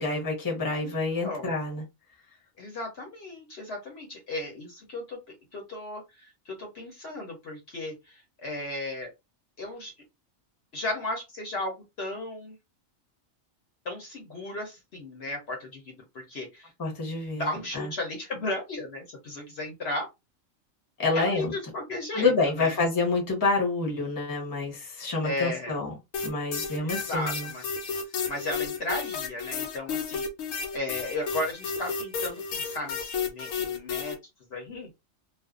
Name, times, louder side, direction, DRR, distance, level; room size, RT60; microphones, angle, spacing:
voice 1, 0.0-1.8 16.8-17.5 17.7-17.9 21.0-21.5 22.1-25.9 26.2-27.5, left 3 dB, 20° left, 0.8 m, -27 dB
voice 2, 0.8-1.6 2.6-9.1 9.6-9.9 10.7-12.6 13.8-16.7 17.3-20.1 21.1-22.8 25.2-25.8 26.8-27.7 28.3-30.3 30.7-34.2 34.5-34.9, left 2 dB, 55° left, 1.0 m, -35 dB
sound 1, 26.1-34.1, left 5 dB, 80° left, 1.0 m, -32 dB
2.5 x 2.2 x 2.4 m
omnidirectional pair, 1.4 m